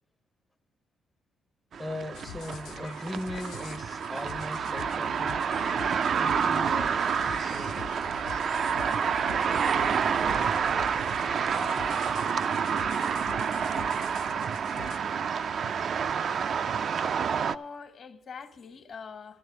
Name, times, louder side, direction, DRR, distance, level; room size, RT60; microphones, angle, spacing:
sound 1, 1.7-17.5, right 7 dB, 55° right, 0.4 m, -28 dB
voice 1, 1.8-5.5 6.1-7.8, left 1 dB, 10° left, 0.6 m, -39 dB
sound 2, 2.1-15.0, left 9 dB, 80° left, 0.4 m, -45 dB
sound 3, 6.2-11.8, right 5 dB, 80° right, 1.2 m, -50 dB
voice 2, 11.5-12.2 17.2-19.4, left 5 dB, 60° left, 1.4 m, -44 dB
12.5 x 9.9 x 4.8 m
cardioid pair, 90°, 0 cm